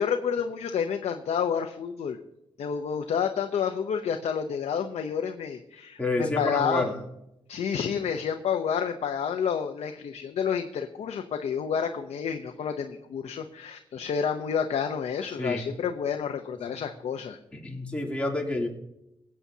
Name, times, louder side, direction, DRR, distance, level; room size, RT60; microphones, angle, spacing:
voice 1, 0.0-2.2 2.6-7.0 7.5-17.4, left 7 dB, 80° left, 5 dB, 0.7 m, -29 dB
voice 2, 6.0-6.9 15.4-15.6 17.5-18.7, left 2 dB, 10° left, -1 dB, 2.9 m, -28 dB
23.5 x 8.4 x 2.8 m, 0.84 s
cardioid pair, 80°, 11 cm